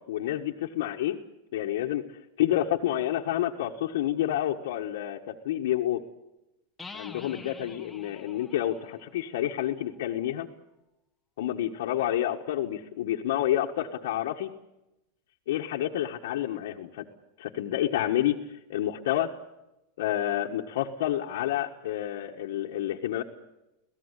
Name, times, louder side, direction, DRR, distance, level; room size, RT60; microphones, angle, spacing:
voice 1, 0.1-1.2 1.5-2.0 2.4-6.0 6.9-10.5 11.4-14.5 15.5-17.0 17.4-18.4 18.7-19.3 20.0-23.2, left 12 dB, 75° left, -1 dB, 1.5 m, -29 dB
sound 1, 6.8-10.4, left 4 dB, 5° left, 1.3 m, -48 dB
26.5 x 17.5 x 8.3 m, 0.92 s
supercardioid pair, 150°, 0 cm